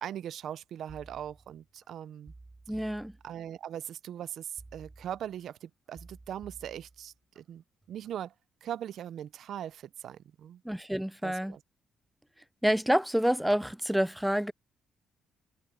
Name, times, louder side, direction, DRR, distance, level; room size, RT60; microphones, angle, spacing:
voice 1, 0.0-2.3 3.2-8.3 8.6-10.6 11.2-11.6, right 10 dB, 70° right, 0.6 m, -40 dB
sound 1, 0.9-1.9 2.3-3.7 4.6-5.5 5.9-7.4 7.8-8.2, right 2 dB, 20° right, 7.5 m, -53 dB
voice 2, 2.7-3.1 10.6-11.6 12.6-14.5, equal, 5° right, 0.5 m, -28 dB
cardioid pair, 90°, 0 cm